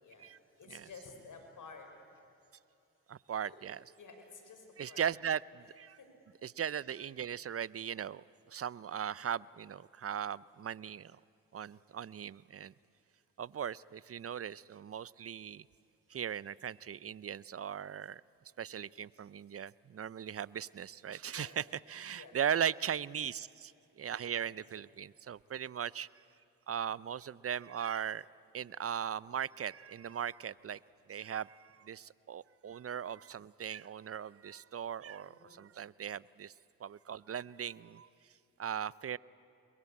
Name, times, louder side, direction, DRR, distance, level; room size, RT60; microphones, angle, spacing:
voice 1, 0.0-1.9 3.4-3.6 4.0-5.1 6.0-6.1 21.2-21.6 22.1-22.4 24.3-24.6 35.2-35.6, left 4 dB, 60° left, 5 dB, 5.7 m, -53 dB
voice 2, 3.1-3.8 4.8-6.0 6.4-11.1 11.5-12.7 13.4-15.6 16.1-18.2 18.6-26.1 26.7-28.3 28.5-30.8 31.1-36.5 36.8-38.1 38.6-39.2, right 8 dB, 40° right, 21 dB, 0.6 m, -38 dB
29.0 x 22.0 x 8.6 m, 2.8 s
supercardioid pair, 55°, 34 cm